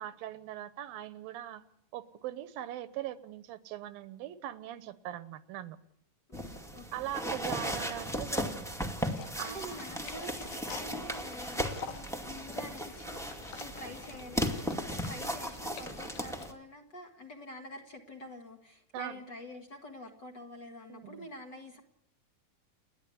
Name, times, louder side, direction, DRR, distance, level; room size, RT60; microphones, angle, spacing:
voice 1, 0.0-1.6 1.9-5.8 6.9-8.8 9.4-9.8 18.9-19.2 20.9-21.3, right 12 dB, 80° right, 15 dB, 2.8 m, -41 dB
voice 2, 6.3-6.9 9.4-21.8, left 1 dB, 35° left, 3 dB, 2.0 m, -47 dB
sound 1, 6.3-16.5, equal, ahead, 1.3 m, -36 dB
sound 2, 9.0-16.5, left 7 dB, 85° left, 3.4 m, -49 dB
29.5 x 10.5 x 9.4 m, 0.77 s
omnidirectional pair, 4.1 m